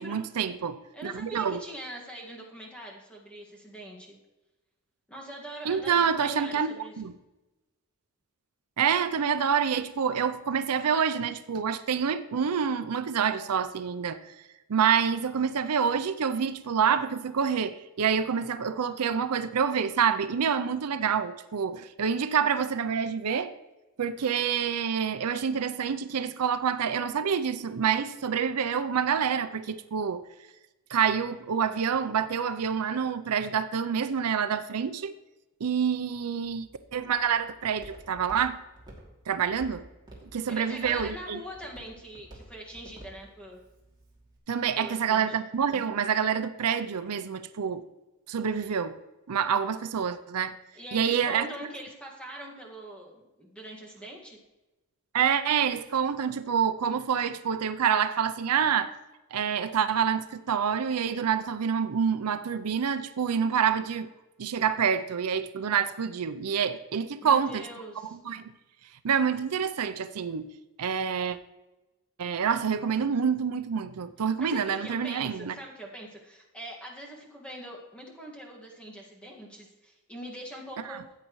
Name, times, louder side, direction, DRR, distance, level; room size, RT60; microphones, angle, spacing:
voice 1, 0.0-1.6 5.6-7.1 8.8-14.2 14.7-23.5 24.0-30.2 30.9-35.1 35.6-38.6 39.3-39.8 40.3-41.4 44.5-47.8 48.3-49.0 49.3-50.6 50.9-51.5 55.1-58.9 59.3-64.1 64.4-67.6 68.2-68.5 69.0-70.5 70.8-71.4 72.2-75.5 80.9-81.0, right 7 dB, 90° right, 11 dB, 0.5 m, -27 dB
voice 2, 0.9-4.2 5.1-6.9 40.5-43.6 44.8-45.3 50.7-54.4 67.2-68.2 74.4-81.0, right 1 dB, 5° left, -2 dB, 1.8 m, -42 dB
Walk footsteps, 36.4-44.4, right 1 dB, 20° right, 2.7 m, -51 dB
14.0 x 8.6 x 3.1 m, 1.1 s
head